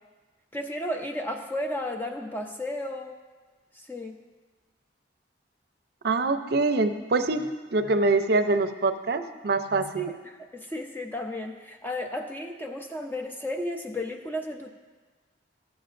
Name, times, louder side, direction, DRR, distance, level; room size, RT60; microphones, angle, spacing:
voice 1, 0.5-3.2 3.7-4.2 10.0-14.7, left 1 dB, 10° left, 3 dB, 0.6 m, -33 dB
voice 2, 6.0-10.1, right 3 dB, 60° right, 8 dB, 0.5 m, -25 dB
15.0 x 7.2 x 2.5 m, 1.3 s
head